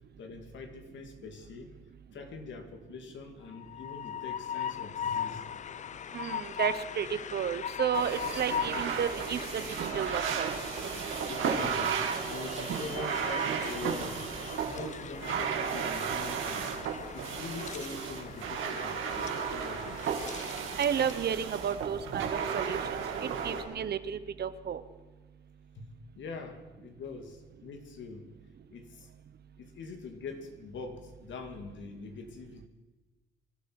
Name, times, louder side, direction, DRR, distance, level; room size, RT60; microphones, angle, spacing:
voice 1, 0.2-1.7 2.1-5.4 11.3-14.2 14.6-16.7 17.1-20.0 25.8-25.9 26.2-28.3 28.7-29.1 29.6-32.7, left 4 dB, 70° left, 5 dB, 2.4 m, -43 dB
Train, 3.5-21.3, left 8 dB, 40° left, 0.4 m, -40 dB
voice 2, 6.1-9.6 9.9-10.5 20.8-24.8, right 8 dB, 55° right, 13 dB, 1.0 m, -32 dB
sound 1, 7.9-23.6, right 7 dB, 80° right, 2.2 m, -34 dB
25.0 x 12.0 x 4.7 m, 1.2 s
cardioid pair, 90°, 20 cm